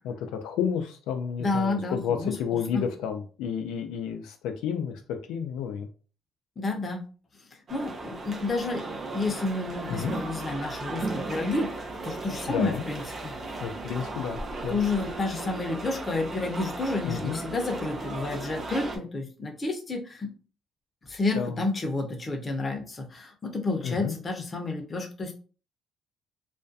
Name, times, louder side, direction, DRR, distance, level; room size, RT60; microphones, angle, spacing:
voice 1, 0.0-5.9 9.9-10.1 12.5-12.8 13.6-14.8 17.0-17.4 21.4-21.6 23.8-24.1, left 7 dB, 85° left, 5 dB, 0.3 m, -31 dB
voice 2, 1.4-2.8 6.6-7.0 7.7-8.8 9.1-13.3 14.7-20.3 21.1-25.3, left 3 dB, 30° left, 2 dB, 0.6 m, -30 dB
sound 1, 7.7-19.0, right 2 dB, 45° right, 0.5 m, -36 dB
2.4 x 2.2 x 2.5 m, 0.37 s
cardioid pair, 100°, 0 cm